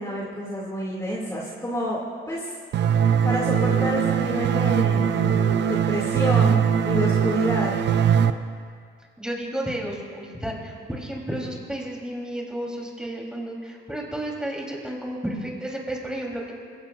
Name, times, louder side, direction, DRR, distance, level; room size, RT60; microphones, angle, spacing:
voice 1, 0.0-2.0 2.3-2.5 3.2-5.4 5.7-7.7, equal, 15° left, -5 dB, 2.6 m, -29 dB
sound 1, 2.7-8.3, right 8 dB, 60° right, 0.7 m, -21 dB
voice 2, 9.2-16.5, right 1 dB, 5° right, -2 dB, 3.8 m, -32 dB
22.0 x 17.0 x 2.6 m, 2.1 s
cardioid pair, 90°, 20 cm